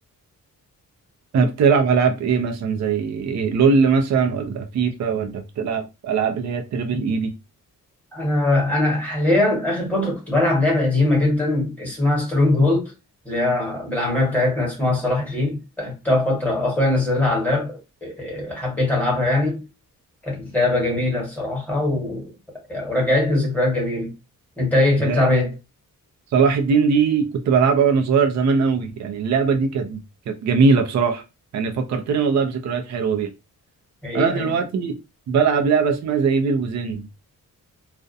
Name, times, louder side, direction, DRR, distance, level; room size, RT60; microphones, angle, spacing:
voice 1, 1.3-7.3 25.0-25.3 26.3-30.0 30.3-31.2 31.5-33.3 34.1-34.9 35.3-37.0, right 5 dB, 55° right, 0.5 m, -20 dB
voice 2, 8.1-12.9 13.2-19.6 20.2-22.3 22.7-24.1 24.6-25.5 34.0-34.5, left 2 dB, 5° left, 1.2 m, -21 dB
2.4 x 2.1 x 2.5 m
wide cardioid pair, 150°, 33 cm